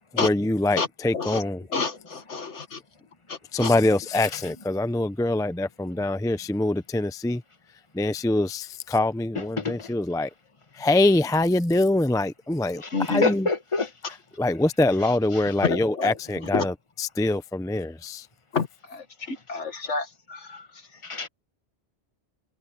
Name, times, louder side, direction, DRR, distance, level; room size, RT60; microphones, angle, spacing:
voice 1, 0.1-1.6 3.5-7.4 7.9-10.3 10.7-12.8 13.1-13.5 14.4-18.3, left 2 dB, 5° left, 0.5 m, -24 dB
voice 2, 1.7-2.8 3.3-3.7 12.9-13.2 15.6-16.2 16.5-16.7 18.5-21.0, left 4 dB, 80° left, 2.1 m, -29 dB
voice 3, 9.3-9.9 12.7-13.9 15.0-15.5 21.0-21.3, left 3 dB, 25° left, 1.6 m, -29 dB
omnidirectional pair, 1.2 m